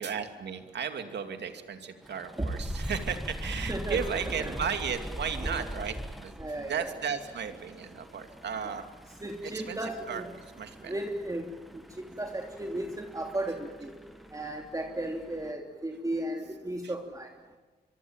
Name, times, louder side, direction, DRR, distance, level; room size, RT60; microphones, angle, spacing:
voice 1, 0.0-8.8 9.4-10.3 10.6-11.0 16.8-16.9, right 7 dB, 75° right, 7 dB, 2.7 m, -35 dB
sound 1, 2.0-15.5, equal, ahead, 1.5 m, -42 dB
voice 2, 3.7-4.5 5.4-5.7 6.4-6.9 9.2-10.3 10.8-11.8 12.2-13.9 14.3-17.3, right 1 dB, 20° right, 2 dB, 3.0 m, -35 dB
25.0 x 24.0 x 9.0 m, 1.3 s
cardioid pair, 85°, 18 cm